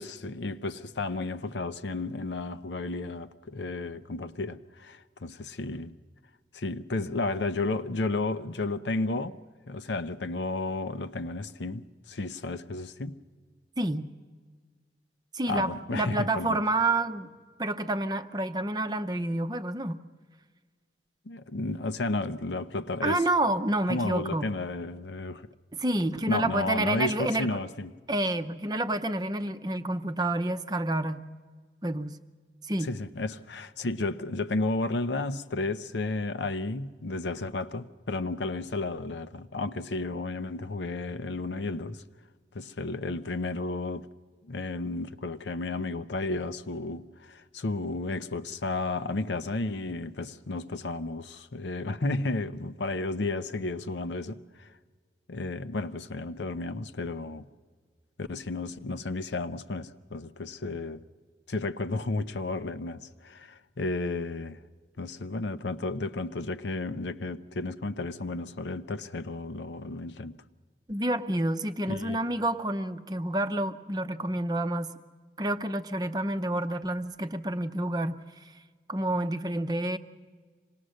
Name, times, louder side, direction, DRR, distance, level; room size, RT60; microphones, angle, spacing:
voice 1, 0.0-5.9 6.5-9.4 9.7-13.2 15.5-16.6 21.3-23.2 23.9-25.5 26.3-27.9 32.8-42.0 42.5-44.1 44.4-54.7 55.3-57.4 58.2-61.0 61.5-64.6 65.0-70.4 71.9-72.2, left 2 dB, 85° left, 0.8 m, -33 dB
voice 2, 13.8-14.1 15.3-17.3 17.6-20.0 23.0-24.5 25.7-27.6 28.1-31.2 31.8-32.2 32.6-32.9 70.9-74.9 75.4-78.4 78.9-80.0, right 1 dB, 20° right, 0.7 m, -29 dB
26.0 x 19.0 x 6.5 m
head